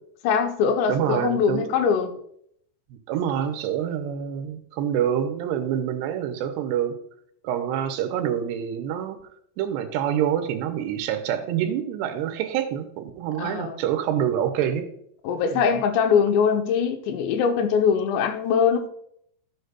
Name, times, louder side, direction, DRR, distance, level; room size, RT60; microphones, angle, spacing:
voice 1, 0.2-2.1 13.4-13.8 15.2-18.9, left 6 dB, 85° left, 5 dB, 3.1 m, -22 dB
voice 2, 0.9-1.7 2.9-7.0 7.4-9.2 9.6-14.9 15.5-15.7, right 9 dB, 85° right, 6 dB, 2.8 m, -26 dB
12.5 x 8.0 x 2.2 m, 0.70 s
omnidirectional pair, 4.9 m